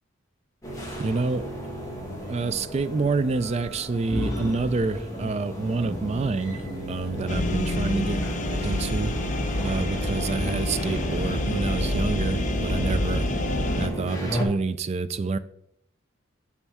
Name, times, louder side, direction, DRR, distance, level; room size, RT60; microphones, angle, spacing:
sound 1, 0.6-14.5, right 1 dB, 15° left, 1.8 m, -33 dB
voice 1, 1.0-1.5 2.3-6.6 6.9-8.2 8.5-9.1 9.6-13.3 13.8-15.4, right 3 dB, 30° right, 13 dB, 0.3 m, -27 dB
sound 2, 7.3-13.9, left 2 dB, 35° left, 0.7 m, -27 dB
7.1 x 7.1 x 3.5 m, 0.74 s
head